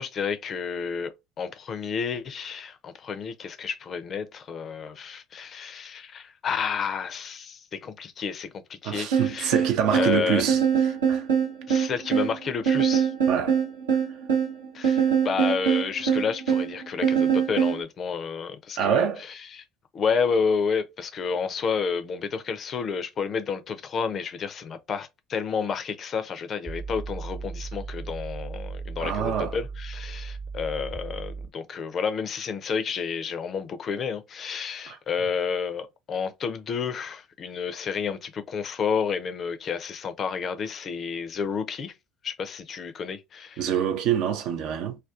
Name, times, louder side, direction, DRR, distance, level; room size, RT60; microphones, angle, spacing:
voice 1, 0.0-9.6 9.9-10.5 11.7-13.1 14.7-19.6 19.9-42.0 42.2-43.7, left 6 dB, 45° left, 0.4 m, -30 dB
voice 2, 8.8-10.6 10.9-11.3 13.3-13.6 18.8-19.2 29.0-29.6 34.9-35.0 43.6-45.0, right 8 dB, 60° right, 0.4 m, -26 dB
sound 1, 9.1-17.8, right 7 dB, 85° right, 0.8 m, -23 dB
sound 2, 26.7-31.5, right 4 dB, 30° right, 0.9 m, -36 dB
2.3 x 2.2 x 2.4 m
hypercardioid pair, 65°, 0 cm